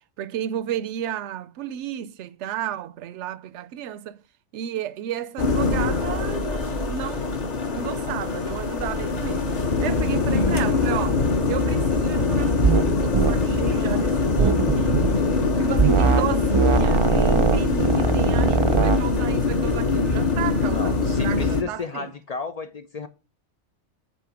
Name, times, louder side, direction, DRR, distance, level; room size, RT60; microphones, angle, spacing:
voice 1, 0.2-4.2 4.5-7.4 7.7-9.5 9.8-11.2 11.5-15.0 15.6-22.1, right 10 dB, 75° right, 0.9 m, -33 dB
sound 1, 5.4-21.6, left 3 dB, 40° left, 0.9 m, -23 dB
voice 2, 10.3-10.7 20.7-23.1, left 6 dB, 60° left, 0.4 m, -32 dB
sound 2, 12.6-12.9 13.1-13.3 14.4-15.1 15.8-16.2 16.5-19.0, right 5 dB, 45° right, 0.4 m, -20 dB
8.5 x 3.8 x 6.0 m
omnidirectional pair, 1.2 m